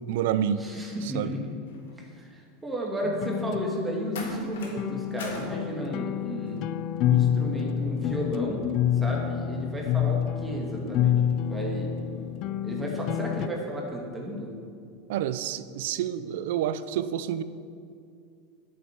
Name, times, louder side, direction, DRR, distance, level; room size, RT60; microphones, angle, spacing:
voice 1, 0.0-0.7 1.0-1.4 15.1-17.4, right 10 dB, 70° right, 14 dB, 0.6 m, -28 dB
voice 2, 0.6-1.5 2.0-6.6 7.0-8.6 8.9-11.9 12.6-14.5, equal, 15° right, -2 dB, 2.3 m, -33 dB
sound 1, 1.7-2.0 4.1-4.8 5.2-5.5 6.5-6.7, left 3 dB, 80° left, 2.1 m, -40 dB
sound 2, 3.0-13.5, left 10 dB, 50° left, 0.4 m, -28 dB
8.9 x 7.6 x 8.4 m, 2.4 s
hypercardioid pair, 105°, 0 cm